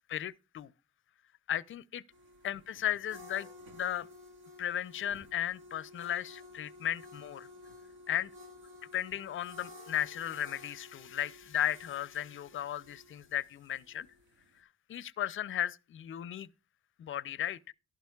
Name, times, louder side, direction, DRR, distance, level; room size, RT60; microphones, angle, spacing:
voice 1, 0.1-0.7 1.5-2.0 2.4-3.5 3.7-4.1 4.6-7.5 8.1-8.3 8.9-14.1 14.9-16.5 17.0-17.7, left 11 dB, 45° left, 0.5 m, -35 dB
sound 1, 2.1-14.6, left 2 dB, 85° right, 1.9 m, -53 dB
12.0 x 11.5 x 2.3 m
cardioid pair, 90°, 30 cm